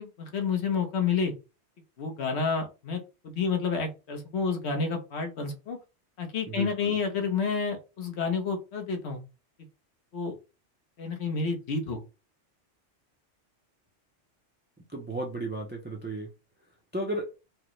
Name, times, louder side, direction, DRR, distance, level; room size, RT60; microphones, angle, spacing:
voice 1, 0.0-1.3 2.0-5.8 6.2-9.2 10.1-10.4 11.0-12.0, left 5 dB, 65° left, 4 dB, 1.1 m, -29 dB
voice 2, 6.5-7.0 14.9-16.3 16.9-17.3, right 2 dB, 15° right, 0 dB, 0.3 m, -34 dB
4.7 x 2.1 x 3.0 m, 0.29 s
omnidirectional pair, 1.2 m